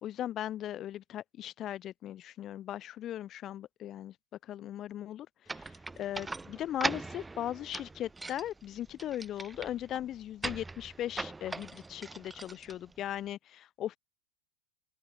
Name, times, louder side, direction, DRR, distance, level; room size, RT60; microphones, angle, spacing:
voice 1, 0.0-4.1 4.4-14.0, left 12 dB, 30° left, 2.6 m, -38 dB
sound 1, 5.5-13.3, right 3 dB, 10° right, 2.1 m, -41 dB
open air
figure-of-eight pair, 90°, 0 cm